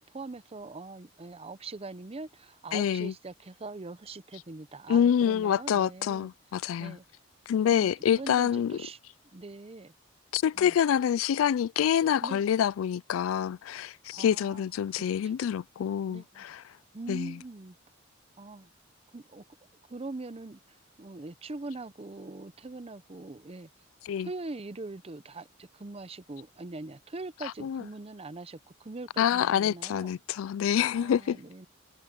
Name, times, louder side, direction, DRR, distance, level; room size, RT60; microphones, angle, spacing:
voice 1, 0.1-6.3 6.8-7.0 7.7-9.0 9.3-9.9 10.6-10.8 12.2-12.5 14.1-14.6 14.9-15.3 16.1-16.4 16.9-17.8 18.4-18.7 19.1-19.4 19.9-23.7 24.2-30.1 30.4-30.5 31.0-31.7, right 3 dB, 30° right, 0.6 m, -42 dB
voice 2, 2.7-3.1 4.9-7.0 7.5-8.8 10.3-16.6 17.1-17.4 24.1-24.3 27.6-27.8 29.2-31.4, left 9 dB, 85° left, 0.3 m, -27 dB
head